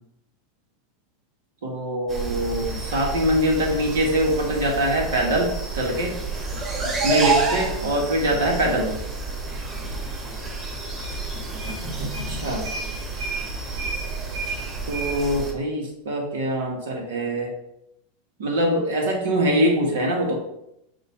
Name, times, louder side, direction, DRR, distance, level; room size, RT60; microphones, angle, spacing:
voice 1, 1.6-6.2 7.0-8.9 12.0-12.7 14.9-17.5 18.4-20.4, right 1 dB, 75° right, 0 dB, 1.9 m, -23 dB
sound 1, 2.1-15.5, right 3 dB, 25° right, 2.4 m, -29 dB
6.6 x 3.1 x 4.9 m, 0.81 s
hypercardioid pair, 105°, 0 cm